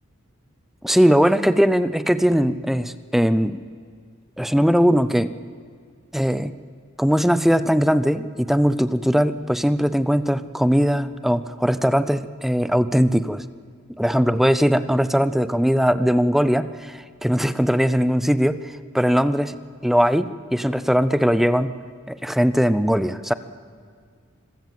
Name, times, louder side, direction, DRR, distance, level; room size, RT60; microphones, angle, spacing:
voice 1, 0.8-3.6 4.4-5.3 6.1-6.5 7.0-13.4 14.0-19.6 19.8-21.7 22.1-23.3, equal, ahead, 13 dB, 0.5 m, -20 dB
25.5 x 15.0 x 7.6 m, 2.1 s
head